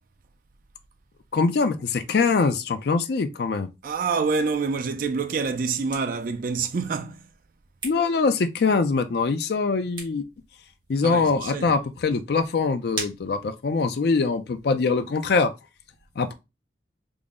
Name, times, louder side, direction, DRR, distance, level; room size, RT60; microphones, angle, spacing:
voice 1, 1.3-3.7 7.8-10.2 10.9-15.5 16.2-16.3, left 4 dB, 60° left, 0.4 m, -23 dB
voice 2, 3.8-7.3 11.0-11.7, right 4 dB, 50° right, 0.4 m, -27 dB
sound 1, 5.5-14.1, right 3 dB, 25° right, 1.0 m, -43 dB
3.7 x 2.0 x 3.4 m
head